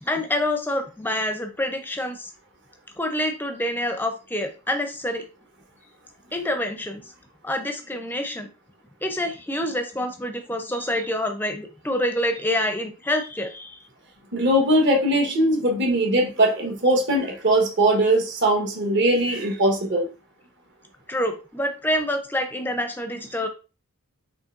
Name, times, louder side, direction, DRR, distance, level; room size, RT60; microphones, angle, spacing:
voice 1, 0.0-2.3 3.0-5.2 6.3-7.1 7.4-8.5 9.0-13.8 21.1-23.5, left 1 dB, 10° left, 5 dB, 0.5 m, -27 dB
voice 2, 14.3-20.1, right 1 dB, 55° right, 1 dB, 1.2 m, -20 dB
5.2 x 3.3 x 2.5 m, 0.33 s
head